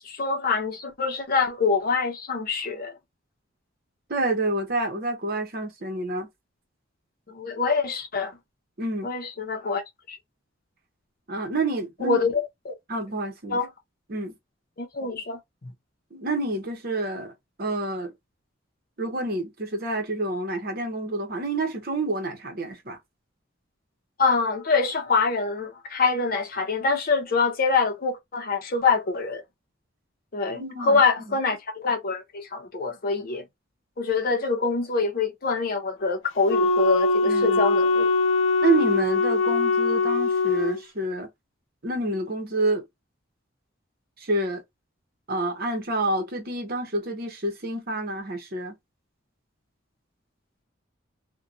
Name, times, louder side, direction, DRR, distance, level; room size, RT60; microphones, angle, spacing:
voice 1, 0.0-3.0 7.3-8.4 9.0-9.8 10.1-10.2 12.0-12.8 13.5-13.7 14.8-15.7 24.2-29.4 30.3-33.5 34.0-38.1, left 4 dB, 50° left, 0.7 m, -25 dB
voice 2, 4.1-6.3 8.8-9.1 11.3-12.2 12.9-13.6 14.1-14.3 16.1-17.3 17.6-18.1 19.0-23.0 30.5-31.0 31.3-31.4 37.3-37.6 38.6-41.3 41.8-42.8 44.2-44.6 45.3-48.7, right 2 dB, 50° right, 0.9 m, -28 dB
Wind instrument woodwind instrument, 36.5-40.8, left 3 dB, 90° left, 0.5 m, -22 dB
2.8 x 2.2 x 2.3 m
head